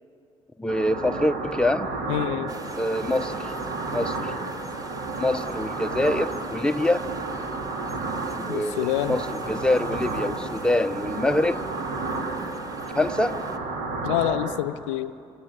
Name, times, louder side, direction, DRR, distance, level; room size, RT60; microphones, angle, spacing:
voice 1, 0.6-1.9 2.8-3.5 3.9-4.3 5.2-7.0 8.4-11.6 12.9-13.4, left 1 dB, 5° left, 8 dB, 0.8 m, -25 dB
sound 1, 0.7-14.6, right 3 dB, 60° right, 2.4 m, -32 dB
voice 2, 2.1-2.5 8.5-9.2 14.0-15.1, left 13 dB, 70° left, 15 dB, 0.6 m, -26 dB
sound 2, 2.5-13.6, right 1 dB, 20° right, 1.7 m, -45 dB
27.5 x 22.5 x 8.6 m, 2.5 s
figure-of-eight pair, 45°, 16 cm